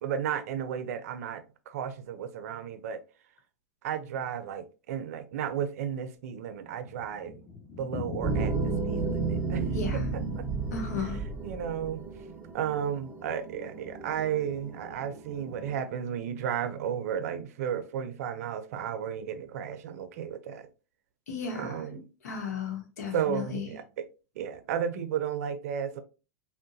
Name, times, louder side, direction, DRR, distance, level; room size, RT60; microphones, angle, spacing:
voice 1, 0.0-3.0 3.8-7.4 7.8-9.7 10.1-10.4 11.4-12.1 12.5-20.7 21.5-22.1 23.1-24.1 24.4-26.0, right 8 dB, 70° right, 0.5 m, -33 dB
Thunder, 6.2-12.3 12.5-12.6 12.9-13.0 13.3-13.4 13.9-14.3, left 3 dB, 25° left, 1.1 m, -43 dB
sound 1, 8.2-15.8, right 4 dB, 15° right, 0.7 m, -33 dB
voice 2, 9.7-10.0 10.7-11.2 21.3-22.0 22.2-23.7, left 5 dB, 80° left, 0.9 m, -35 dB
3.7 x 2.1 x 2.6 m
hypercardioid pair, 110°, 8 cm